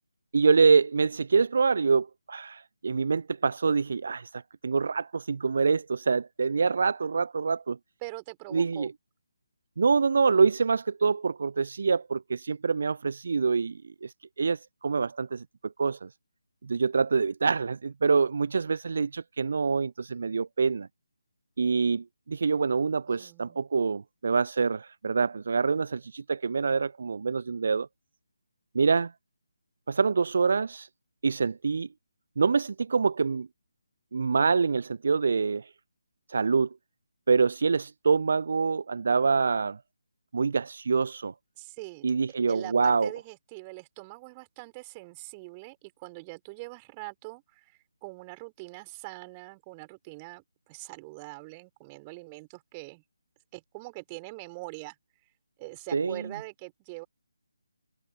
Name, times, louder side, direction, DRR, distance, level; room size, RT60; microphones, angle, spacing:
voice 1, 0.3-7.8 8.5-8.9 9.8-16.1 16.6-20.9 21.6-27.9 28.7-29.1 29.9-30.9 31.2-31.9 32.4-33.5 34.1-35.7 36.3-36.7 37.3-39.8 40.3-41.3 42.0-43.1 55.9-56.2, right 5 dB, 50° right, 0.5 m, -26 dB
voice 2, 8.0-8.9 23.1-23.6 41.6-42.1 42.5-53.0 53.5-55.0 55.6-57.1, right 26 dB, 20° right, 5.3 m, -43 dB
figure-of-eight pair, 150°, 0 cm